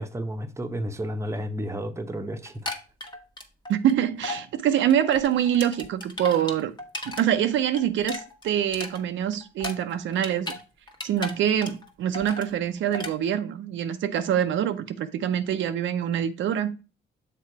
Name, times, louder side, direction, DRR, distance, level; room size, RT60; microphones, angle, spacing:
voice 1, 0.0-2.7, equal, 15° right, 0.8 m, -32 dB
sound 1, 2.5-3.9 4.2-4.4 4.8-7.2 7.5-10.6 10.9-11.9 12.1-12.5 12.9-13.1, left 1 dB, 20° left, 1.2 m, -35 dB
voice 2, 3.7-6.7 7.1-10.5 11.0-16.8, right 10 dB, 75° right, 0.6 m, -25 dB
6.7 x 3.7 x 4.7 m
cardioid pair, 90°, 20 cm